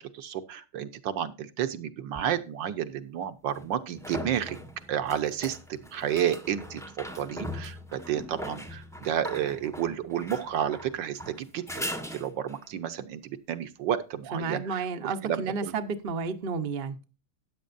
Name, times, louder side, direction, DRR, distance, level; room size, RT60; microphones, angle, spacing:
voice 1, 0.1-4.6 4.9-11.8 12.1-15.7, right 10 dB, 65° right, 1.4 m, -31 dB
sound 1, 2.1-2.2 3.5-12.7 16.1-16.2, equal, 5° left, 0.6 m, -40 dB
voice 2, 14.3-17.0, right 5 dB, 45° right, 0.7 m, -31 dB
13.5 x 9.6 x 2.5 m
omnidirectional pair, 2.3 m